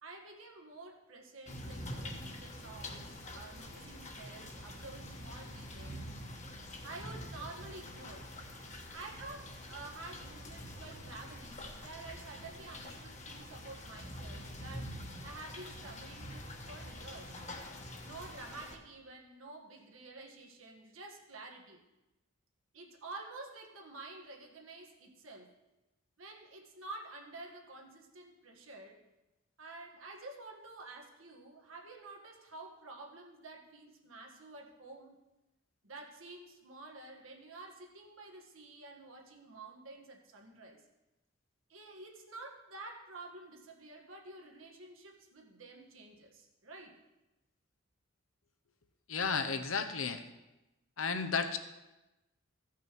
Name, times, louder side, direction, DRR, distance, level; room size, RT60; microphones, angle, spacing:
voice 1, 0.0-6.1 6.8-8.3 8.9-14.9 15.2-17.3 18.0-21.8 22.7-25.5 26.2-29.0 29.6-35.2 35.8-40.8 41.7-47.0, right 2 dB, 85° right, 1 dB, 1.6 m, -50 dB
sound 1, 1.5-18.8, left 1 dB, 35° left, 1.2 m, -46 dB
voice 2, 49.1-50.2 51.0-51.6, left 5 dB, 85° left, 8 dB, 0.9 m, -33 dB
15.0 x 5.9 x 4.6 m, 1.0 s
head